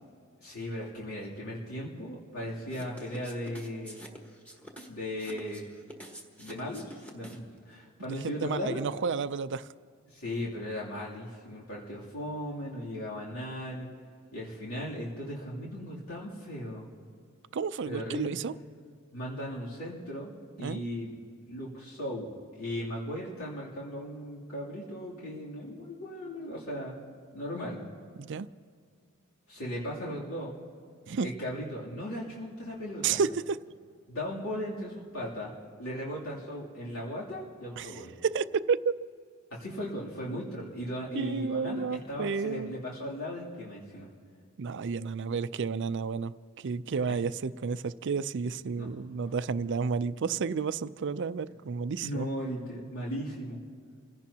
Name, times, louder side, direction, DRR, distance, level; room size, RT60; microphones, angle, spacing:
voice 1, 0.4-4.1 4.9-5.6 6.4-8.8 10.1-13.9 14.3-16.9 17.8-18.3 19.1-20.3 20.6-21.1 21.4-27.0 27.3-27.8 29.5-30.5 31.2-33.2 34.1-35.5 35.8-38.1 39.5-44.1 47.1-47.2 48.8-48.9 52.0-53.6, equal, 75° left, -6 dB, 3.0 m, -37 dB
sound 1, 2.7-7.6, equal, 5° left, 1.5 m, -48 dB
voice 2, 8.2-9.7 17.5-18.5 20.6-20.8 28.2-28.5 31.1-31.3 33.0-33.6 37.8-37.9 38.2-38.9 41.1-42.7 44.6-52.3, right 5 dB, 55° right, 14 dB, 0.4 m, -31 dB
28.5 x 16.5 x 2.9 m, 2.2 s
head